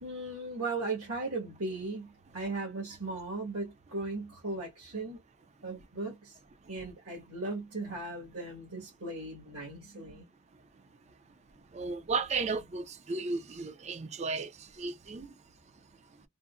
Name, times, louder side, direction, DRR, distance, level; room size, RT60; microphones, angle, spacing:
voice 1, 0.0-5.2 5.6-6.4 6.7-10.2, right 2 dB, 75° right, 1.5 m, -37 dB
voice 2, 11.7-15.4, right 4 dB, 30° right, 0.4 m, -34 dB
3.7 x 2.0 x 2.5 m
head